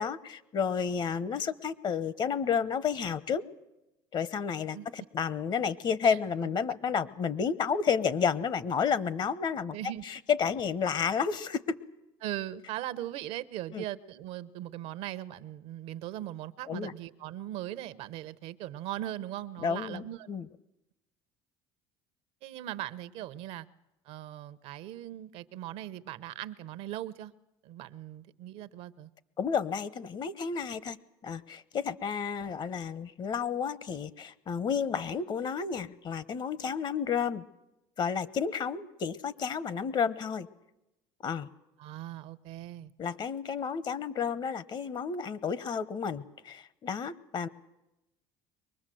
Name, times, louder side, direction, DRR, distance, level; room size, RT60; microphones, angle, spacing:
voice 1, 0.0-3.4 4.1-9.8 10.0-11.8 13.7-13.8 16.7-16.9 19.6-20.5 29.4-31.0 31.2-37.5 38.0-40.5 41.2-41.5 43.0-47.5, left 6 dB, 45° left, 18 dB, 1.0 m, -31 dB
voice 2, 4.7-5.1 6.0-6.2 9.7-10.0 12.2-20.3 22.4-23.7 24.0-27.3 27.6-29.1 41.8-42.9, right 13 dB, 70° right, 16 dB, 0.8 m, -39 dB
23.0 x 19.5 x 7.7 m, 0.95 s
supercardioid pair, 95°, 11 cm